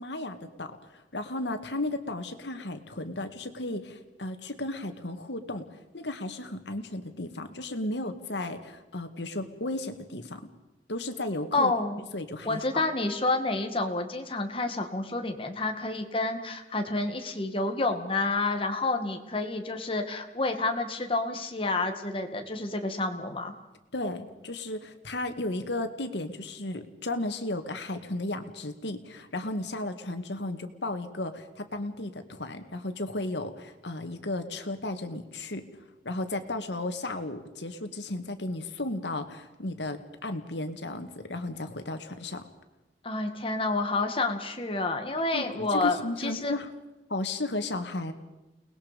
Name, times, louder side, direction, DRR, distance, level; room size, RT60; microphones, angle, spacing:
voice 1, 0.0-5.7 5.9-10.4 10.9-11.7 12.1-12.8 23.9-35.7 36.0-42.4 45.3-46.7 47.1-48.1, left 2 dB, 80° left, 8 dB, 2.1 m, -34 dB
voice 2, 11.5-12.0 12.5-23.5 43.0-46.5, left 2 dB, 30° left, 5 dB, 2.2 m, -29 dB
30.0 x 20.0 x 5.3 m, 1.0 s
head